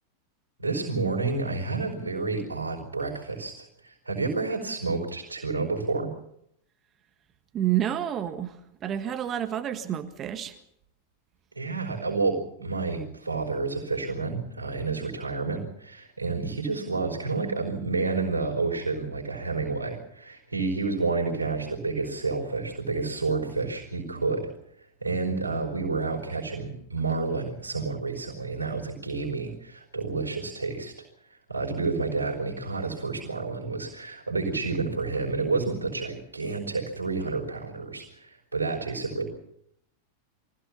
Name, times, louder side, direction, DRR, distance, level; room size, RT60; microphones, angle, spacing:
voice 1, 0.6-6.1 11.5-24.5 25.0-30.9 31.5-39.3, right 3 dB, 80° right, 2 dB, 4.9 m, -30 dB
voice 2, 7.5-10.5, right 11 dB, 30° right, 9 dB, 1.6 m, -29 dB
24.0 x 16.5 x 7.2 m, 0.74 s
figure-of-eight pair, 90°, 0 cm